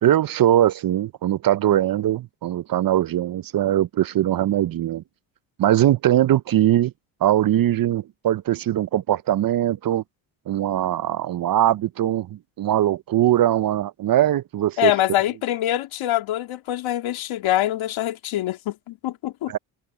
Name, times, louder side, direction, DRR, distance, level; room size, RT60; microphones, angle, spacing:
voice 1, 0.0-5.0 5.6-6.9 7.2-10.0 10.5-14.9 19.5-19.6, right 12 dB, 45° right, 0.7 m, -21 dB
voice 2, 14.8-19.5, left 13 dB, 70° left, 3.1 m, -24 dB
supercardioid pair, 80°, 49 cm